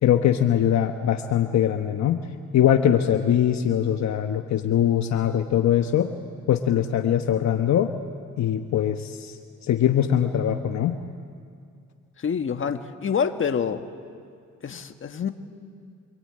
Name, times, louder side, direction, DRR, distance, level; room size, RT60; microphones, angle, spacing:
voice 1, 0.0-2.3 2.5-6.1 6.5-7.9 8.4-9.3 9.7-11.0, left 10 dB, 65° left, 6 dB, 1.2 m, -22 dB
voice 2, 12.2-13.9 14.6-15.3, left 7 dB, 40° left, 7 dB, 1.6 m, -27 dB
26.5 x 22.5 x 9.0 m, 2.3 s
cardioid pair, 90°, 30 cm